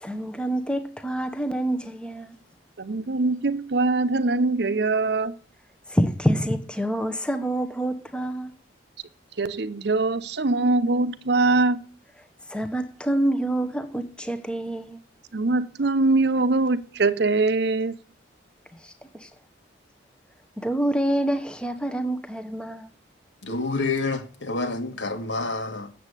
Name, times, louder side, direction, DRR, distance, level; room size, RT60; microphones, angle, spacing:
voice 1, 0.0-2.4 5.9-8.5 12.5-15.0 18.8-19.3 20.6-22.9, right 1 dB, 5° left, 0.9 m, -27 dB
voice 2, 2.8-5.3 9.4-11.8 15.3-17.9, right 3 dB, 60° right, 0.7 m, -22 dB
voice 3, 23.4-25.9, left 3 dB, 75° left, 2.0 m, -28 dB
8.1 x 7.6 x 8.2 m
head